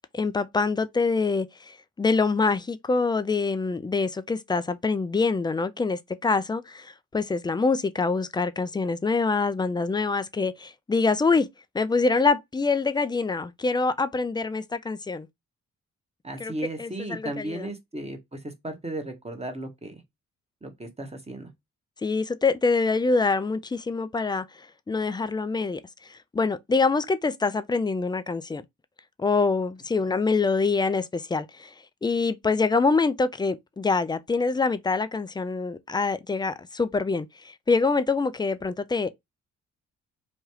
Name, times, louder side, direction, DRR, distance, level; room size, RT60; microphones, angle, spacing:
voice 1, 0.1-11.5 11.7-15.3 16.4-16.5 16.8-17.7 22.0-24.4 24.9-25.8 26.3-28.6 29.2-31.7 32.0-37.3 37.7-39.1, left 4 dB, 15° left, 0.3 m, -25 dB
voice 2, 16.2-20.0 20.6-21.5, right 1 dB, 15° right, 1.1 m, -35 dB
3.1 x 2.2 x 3.0 m
hypercardioid pair, 45°, 37 cm